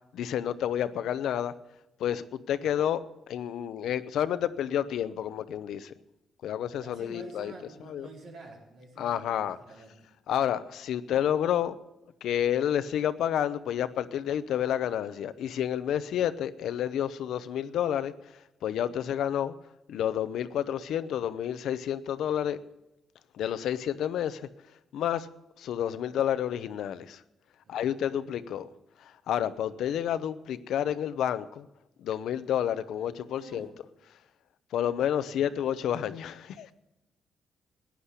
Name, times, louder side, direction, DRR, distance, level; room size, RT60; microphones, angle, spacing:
voice 1, 0.1-1.5 2.0-5.9 6.4-7.5 7.9-8.1 9.0-9.6 10.3-11.8 12.2-19.5 19.9-22.6 23.3-24.4 24.9-25.3 25.6-27.2 27.7-28.7 29.0-31.7 32.0-33.7 34.7-36.7, left 10 dB, 80° left, 13 dB, 0.8 m, -30 dB
voice 2, 6.8-10.1 27.6-28.2 33.4-33.7 35.2-35.4, right 2 dB, 85° right, -3 dB, 4.4 m, -48 dB
15.5 x 10.0 x 8.3 m, 0.94 s
cardioid pair, 90°, 0 cm